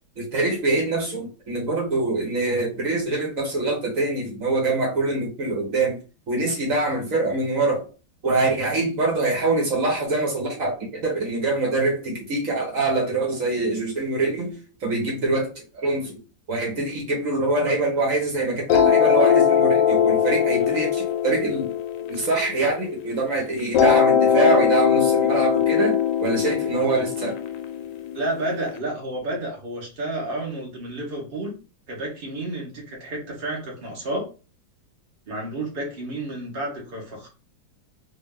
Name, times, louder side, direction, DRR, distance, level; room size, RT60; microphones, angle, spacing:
voice 1, 0.2-6.0 6.3-7.9 8.2-16.2 16.5-21.7 22.1-27.3, right 2 dB, 50° right, 1.5 m, -24 dB
sound 1, 18.7-23.1 23.7-28.7, left 8 dB, 80° left, 1.2 m, -21 dB
voice 2, 28.1-31.5 31.9-34.3 35.3-37.3, right 1 dB, 35° right, 1.2 m, -30 dB
3.2 x 2.7 x 3.6 m
omnidirectional pair, 1.9 m